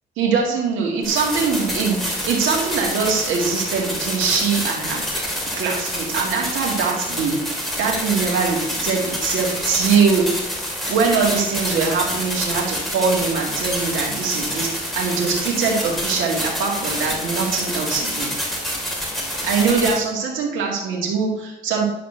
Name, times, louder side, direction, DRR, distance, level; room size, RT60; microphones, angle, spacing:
voice 1, 0.2-5.0 5.6-7.4 7.8-10.3 10.9-18.3 19.4-21.8, right 5 dB, 80° right, -2 dB, 2.0 m, -22 dB
sound 1, 1.0-20.0, equal, ahead, 3.1 m, -27 dB
10.0 x 4.3 x 6.5 m, 0.95 s
cardioid pair, 90°, 20 cm